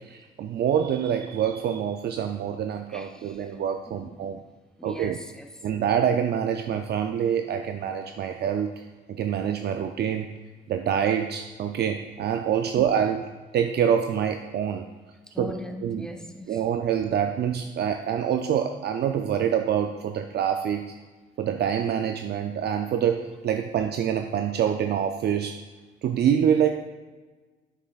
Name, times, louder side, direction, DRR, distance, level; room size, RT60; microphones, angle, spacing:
voice 1, 0.0-4.4 4.8-5.2 5.6-10.3 10.7-14.8 15.4-15.5 15.8-16.1 16.5-20.9 21.4-25.6 26.0-26.7, right 8 dB, 55° right, 6 dB, 0.4 m, -26 dB
voice 2, 2.9-3.5 3.9-4.2 4.8-5.5 12.6-12.9 15.3-16.6, left 1 dB, 5° left, 5 dB, 0.7 m, -40 dB
9.0 x 7.1 x 2.4 m, 1.3 s
cardioid pair, 90°, 20 cm